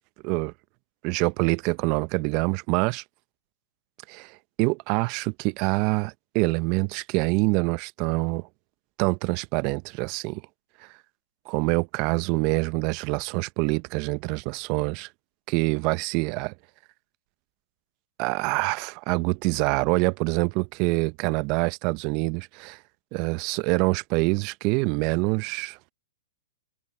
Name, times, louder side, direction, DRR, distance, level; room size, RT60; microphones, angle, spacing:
voice 1, 1.0-3.0 4.1-8.5 9.0-10.4 10.8-10.9 11.5-15.1 15.5-16.5 18.2-22.8 23.1-25.8, right 27 dB, 40° right, 0.9 m, -25 dB
hypercardioid pair, 120°, 0 cm